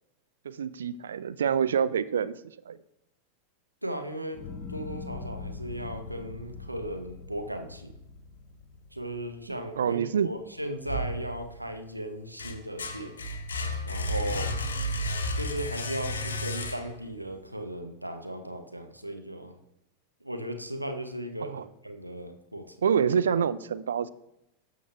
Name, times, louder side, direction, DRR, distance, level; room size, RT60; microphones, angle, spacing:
voice 1, 0.4-2.3 2.7-2.8 9.8-10.3 21.4-21.6 22.8-24.1, right 7 dB, 65° right, 15 dB, 0.3 m, -26 dB
voice 2, 3.8-4.4 4.7-7.9 8.9-13.2 13.8-14.5 15.3-19.5 20.2-22.8, right 1 dB, 85° right, 5 dB, 0.7 m, -36 dB
sound 1, 4.3-10.7 11.1-11.7, left 4 dB, 40° left, 1.7 m, -43 dB
sound 2, 10.8-11.7 12.1-17.1, left 1 dB, 70° left, 0.8 m, -32 dB
12.0 x 6.4 x 2.3 m, 0.82 s
figure-of-eight pair, 90°, 0 cm